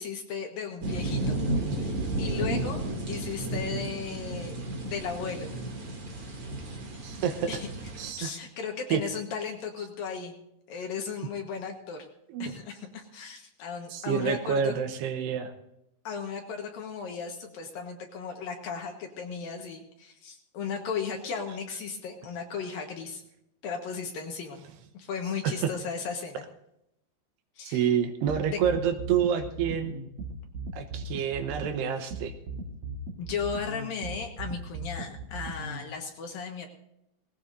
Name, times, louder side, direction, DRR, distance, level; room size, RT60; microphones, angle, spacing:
voice 1, 0.0-1.4 1.8-2.8 3.1-4.6 4.8-5.5 7.5-7.7 8.2-10.3 10.7-12.1 12.4-14.7 16.0-23.2 23.6-24.6 24.9-26.4 27.6-28.0 28.5-28.6 31.2-31.3 33.2-36.7, left 6 dB, 65° left, 3 dB, 2.7 m, -36 dB
sound 1, 0.8-8.1, right 2 dB, 35° right, 2.7 m, -32 dB
voice 2, 7.0-7.5 8.0-8.3 8.9-9.0 12.3-12.5 13.9-15.5 25.4-25.7 27.6-30.0 30.7-32.3, right 8 dB, 75° right, 7 dB, 2.9 m, -28 dB
sound 2, 28.3-35.8, right 3 dB, 60° right, 1.9 m, -38 dB
19.5 x 17.5 x 2.6 m, 0.82 s
omnidirectional pair, 5.2 m